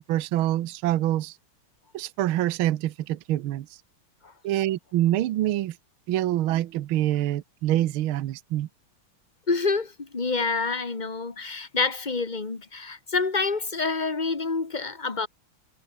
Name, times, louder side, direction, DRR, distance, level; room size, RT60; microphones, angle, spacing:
voice 1, 0.0-1.4 1.9-3.7 4.4-5.7 6.1-8.7, right 13 dB, 75° right, 1.6 m, -25 dB
voice 2, 9.5-15.3, left 4 dB, 20° left, 1.9 m, -27 dB
omnidirectional pair, 2.4 m